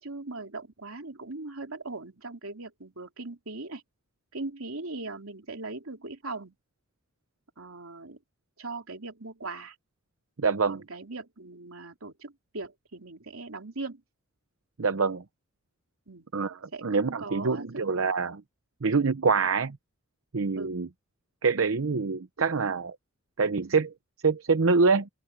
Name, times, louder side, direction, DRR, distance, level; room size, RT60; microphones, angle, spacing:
voice 1, 0.0-3.8 4.3-6.5 7.6-8.2 8.6-9.7 10.6-14.0 16.1-16.3 16.7-17.8 20.5-20.8, right 3 dB, 90° right, 3.1 m, -39 dB
voice 2, 10.4-10.8 14.8-15.2 16.3-18.4 18.8-19.8 20.3-20.9 21.4-23.0 23.4-23.9 24.2-25.1, right 4 dB, 70° right, 0.7 m, -25 dB
open air
head